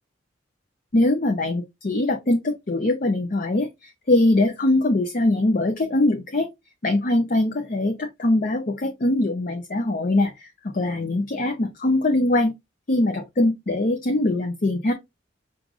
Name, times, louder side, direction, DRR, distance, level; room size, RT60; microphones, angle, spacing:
voice 1, 0.9-6.5 6.8-12.5 12.9-14.9, left 2 dB, 45° left, 0.5 m, -22 dB
6.0 x 2.5 x 2.4 m
head